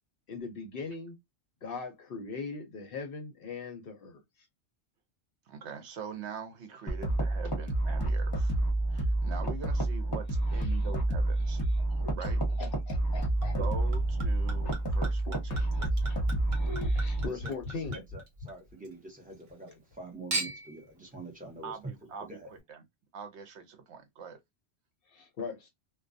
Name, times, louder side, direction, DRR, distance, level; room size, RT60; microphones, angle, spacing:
voice 1, 0.3-1.2 1.6-4.2 10.5-10.9 11.7-13.6 15.2-15.7 16.0-16.2 16.5-18.0 25.1-25.7, left 4 dB, 60° left, 0.7 m, -41 dB
voice 2, 5.5-8.6 8.9-11.6 12.1-12.4 13.6-15.6 21.6-22.8 23.1-24.4, right 6 dB, 75° right, 0.9 m, -43 dB
sound 1, 6.9-17.3, right 2 dB, 25° left, 0.8 m, -29 dB
Chink clink / Liquid, 13.4-18.9 19.3-19.9 20.3-20.8 21.6-21.7, right 1 dB, 55° right, 1.2 m, -39 dB
voice 3, 17.3-17.6 17.9-22.5, right 2 dB, 10° right, 0.7 m, -45 dB
2.3 x 2.2 x 2.4 m
omnidirectional pair, 1.2 m